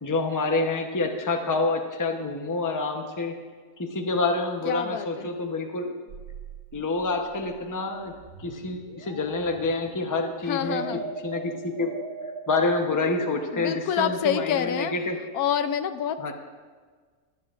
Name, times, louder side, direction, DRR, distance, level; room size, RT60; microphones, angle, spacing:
voice 1, 0.0-3.3 3.8-5.9 6.7-8.1 8.4-10.8 11.2-11.9 12.5-15.2 16.2-16.3, left 3 dB, 15° left, 4 dB, 0.7 m, -27 dB
voice 2, 4.6-5.3 10.5-11.0 13.5-14.9 15.3-16.2, left 9 dB, 85° left, 10 dB, 1.1 m, -27 dB
sound 1, 6.1-14.8, right 6 dB, 65° right, 0.6 m, -41 dB
24.5 x 9.4 x 2.5 m, 1.5 s
omnidirectional pair, 1.6 m